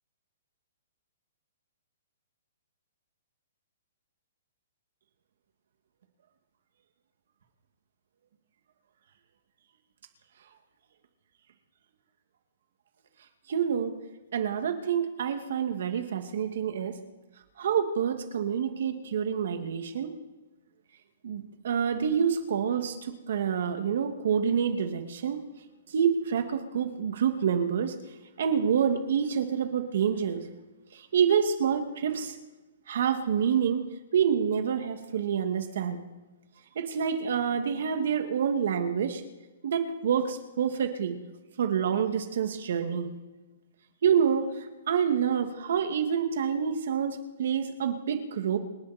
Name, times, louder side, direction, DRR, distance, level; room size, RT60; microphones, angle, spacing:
voice 1, 13.5-14.0 14.3-17.0 17.6-20.1 21.2-25.4 25.9-27.9 28.4-30.4 30.9-32.3 32.9-33.9 34.1-36.0 36.8-39.2 39.6-41.2 41.6-43.1 44.0-48.6, right 7 dB, 60° right, 6 dB, 2.2 m, -27 dB
29.0 x 10.5 x 4.4 m, 1.1 s
hypercardioid pair, 165°, 0 cm